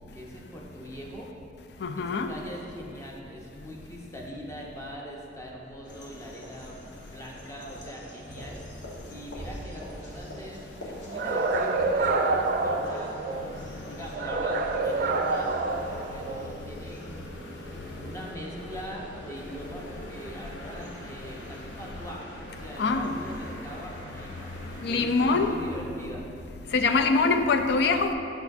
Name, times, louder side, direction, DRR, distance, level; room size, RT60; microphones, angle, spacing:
voice 1, 0.1-1.3 2.0-8.6 9.1-13.5 13.9-15.6 16.1-17.5 18.0-26.2, equal, 15° left, 0.6 m, -42 dB
voice 2, 1.8-2.3 22.8-23.1 24.8-25.6 26.7-28.1, left 4 dB, 65° left, 0.4 m, -23 dB
sound 1, 5.8-25.5, left 1 dB, 80° left, 1.1 m, -43 dB
sound 2, 11.1-13.5 14.1-16.5, right 3 dB, 55° right, 0.3 m, -27 dB
6.9 x 6.0 x 2.6 m
head